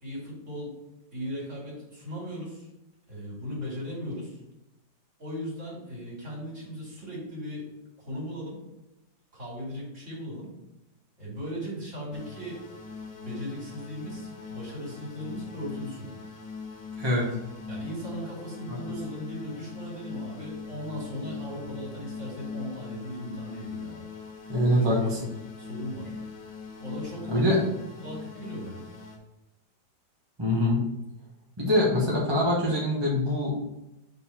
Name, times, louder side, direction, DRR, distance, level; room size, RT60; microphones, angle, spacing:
voice 1, 0.0-0.7 1.1-2.7 3.1-4.4 5.2-7.7 8.0-8.6 9.3-10.6 11.2-12.6 13.2-16.2 17.7-24.1 24.8-24.9 25.6-26.2 26.8-27.3 28.0-28.8, equal, 40° right, -5 dB, 2.9 m, -37 dB
sound 1, 12.1-29.2, left 5 dB, 80° left, 1.7 m, -41 dB
voice 2, 17.0-17.3 24.5-25.2 27.3-27.6 30.4-30.8 31.6-33.6, left 1 dB, 15° right, -4 dB, 1.1 m, -24 dB
5.3 x 4.0 x 5.7 m, 0.92 s
omnidirectional pair, 2.0 m